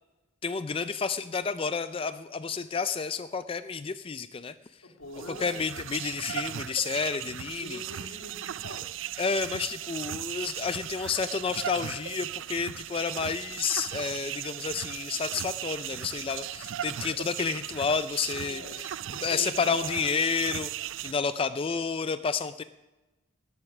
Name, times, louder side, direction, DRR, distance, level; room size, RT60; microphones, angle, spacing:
voice 1, 0.4-4.5 5.3-7.8 9.2-18.9 19.2-20.7 21.0-22.6, left 5 dB, 25° left, 12 dB, 0.3 m, -30 dB
voice 2, 4.8-5.7 7.6-8.9 18.4-20.6, left 2 dB, 90° left, 4 dB, 1.9 m, -44 dB
sound 1, 5.0-21.1, right 12 dB, 65° right, 0.4 m, -37 dB
19.0 x 7.8 x 6.0 m, 1.1 s
head